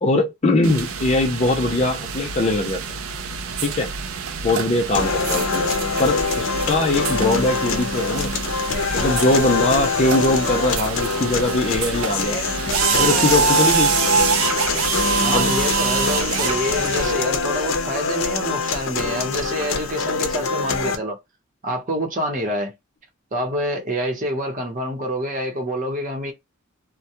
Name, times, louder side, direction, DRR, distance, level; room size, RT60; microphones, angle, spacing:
voice 1, 0.0-2.8 3.6-3.9 4.4-5.7 6.0-8.3 8.9-12.4 13.0-14.0 15.3-15.5, left 2 dB, 35° left, 0.5 m, -21 dB
sound 1, 0.6-17.1, right 6 dB, 90° right, 0.4 m, -25 dB
sound 2, 4.9-20.9, left 4 dB, 80° left, 0.6 m, -24 dB
voice 2, 15.2-21.2 21.6-22.7 23.3-26.3, equal, 40° right, 0.9 m, -27 dB
2.2 x 2.2 x 2.7 m
head